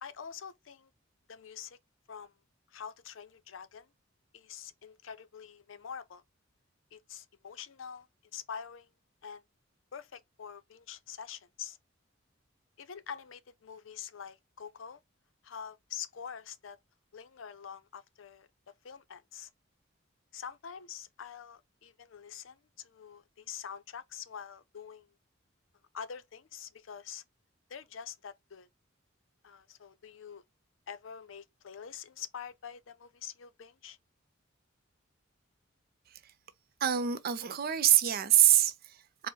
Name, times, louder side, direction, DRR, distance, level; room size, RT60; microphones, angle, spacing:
voice 1, 0.0-0.9 1.3-1.8 2.1-2.3 2.7-3.9 4.3-6.2 6.9-8.1 8.3-8.9 9.2-9.4 9.9-11.8 12.8-15.0 15.4-16.8 17.1-18.5 18.8-19.5 20.3-25.1 25.9-27.2 27.7-28.7 29.4-30.4 30.9-34.0, left 7 dB, 75° left, 0.5 m, -45 dB
voice 2, 36.8-39.3, right 11 dB, 50° right, 0.4 m, -25 dB
4.5 x 2.1 x 4.2 m
head